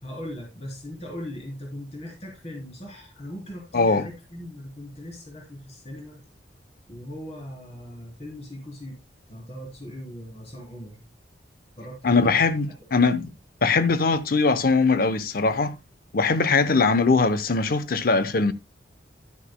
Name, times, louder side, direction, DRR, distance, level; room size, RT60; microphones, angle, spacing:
voice 1, 0.0-6.2 6.9-9.0 9.3-11.1 11.8-12.9, left 1 dB, 35° left, 3.8 m, -39 dB
voice 2, 3.7-4.1 12.0-13.3 13.6-15.7 16.1-18.5, left 4 dB, 55° left, 0.7 m, -21 dB
11.5 x 9.6 x 2.2 m
head